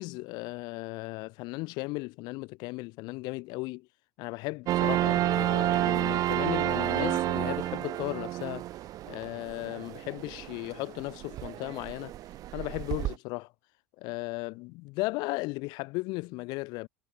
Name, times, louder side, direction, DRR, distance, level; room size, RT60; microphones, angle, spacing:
voice 1, 0.0-3.9 4.2-8.7 9.0-12.1 12.5-13.5 14.0-16.9, left 24 dB, 65° left, 2.4 m, -36 dB
sound 1, 4.7-13.2, right 14 dB, 50° right, 2.1 m, -30 dB
supercardioid pair, 100°, 8 cm